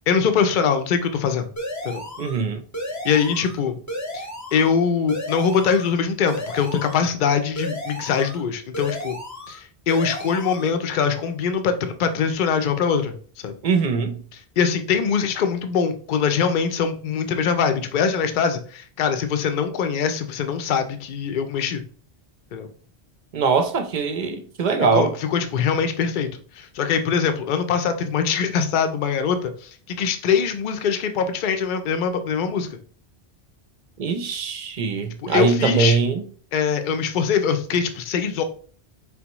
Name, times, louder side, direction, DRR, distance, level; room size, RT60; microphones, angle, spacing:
voice 1, 0.1-1.5 1.8-2.0 3.0-3.8 4.1-4.2 4.5-9.2 9.5-13.1 13.4-13.6 14.6-21.8 22.5-22.7 24.9-26.3 26.5-32.7 35.2-36.0 36.5-38.4, left 6 dB, 55° left, 0.7 m, -23 dB
sound 1, 1.6-2.4 2.7-3.6 3.9-4.7 5.1-5.9 6.3-7.1 7.6-8.4 8.7-9.6 9.9-10.7, equal, 20° left, 0.7 m, -33 dB
voice 2, 2.2-2.6 13.6-14.2 23.3-25.1 34.0-36.2, right 5 dB, 50° right, 0.6 m, -22 dB
4.4 x 3.5 x 2.9 m
omnidirectional pair, 1.1 m